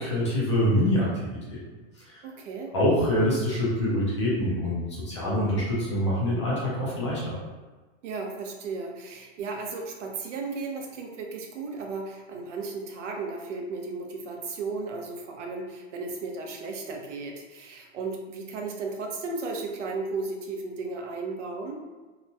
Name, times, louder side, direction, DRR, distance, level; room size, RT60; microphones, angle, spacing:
voice 1, 0.0-1.4 2.1-2.2 2.7-7.4, equal, 25° left, -7 dB, 0.3 m, -25 dB
voice 2, 2.2-2.7 8.0-21.8, right 3 dB, 85° right, 1 dB, 0.7 m, -35 dB
2.9 x 2.1 x 2.6 m, 1.3 s
supercardioid pair, 180°, 35 cm